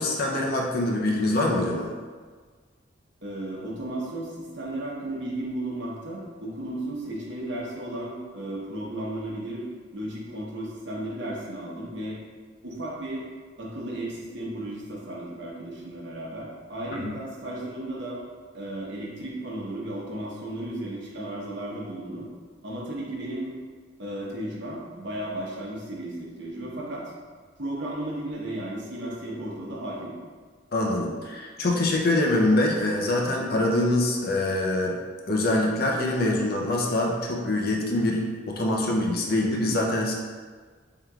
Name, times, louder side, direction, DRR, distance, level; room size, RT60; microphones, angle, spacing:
voice 1, 0.0-1.9 16.9-17.2 30.7-35.0 35.3-40.1, left 1 dB, 55° left, -1 dB, 0.6 m, -24 dB
voice 2, 3.2-9.6 9.9-12.2 12.6-13.3 13.6-18.2 18.5-22.3 22.6-23.5 24.0-27.1 27.6-30.2, right 1 dB, 65° right, -5 dB, 1.0 m, -34 dB
4.5 x 3.7 x 2.3 m, 1.5 s
head